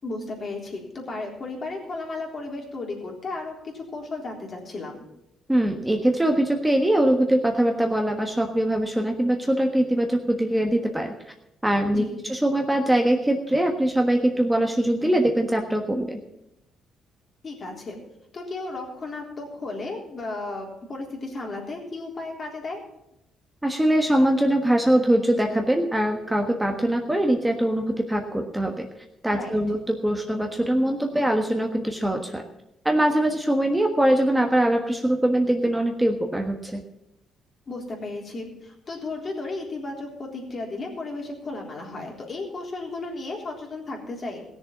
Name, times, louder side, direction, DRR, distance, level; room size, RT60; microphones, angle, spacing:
voice 1, 0.0-5.1 12.0-12.2 17.4-18.0 18.3-22.8 29.3-29.6 37.7-44.4, left 2 dB, 45° left, 0 dB, 3.5 m, -34 dB
voice 2, 5.5-11.1 11.6-16.2 23.6-28.9 29.2-32.4 32.8-36.8, right 1 dB, 10° right, 3 dB, 1.4 m, -22 dB
16.0 x 7.0 x 7.3 m, 0.87 s
cardioid pair, 90°, 0 cm